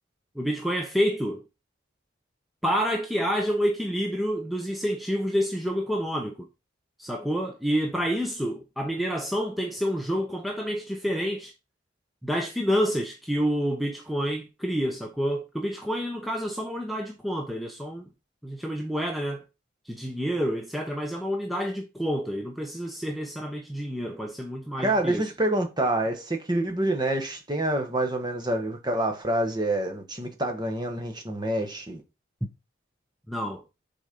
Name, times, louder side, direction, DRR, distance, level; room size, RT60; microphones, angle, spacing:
voice 1, 0.4-1.4 2.6-6.5 7.0-11.5 12.2-18.0 18.4-19.4 19.9-25.3 33.3-33.6, equal, ahead, 0.6 m, -28 dB
voice 2, 24.8-32.0, right 1 dB, 20° right, 1.2 m, -27 dB
6.6 x 4.1 x 5.2 m
head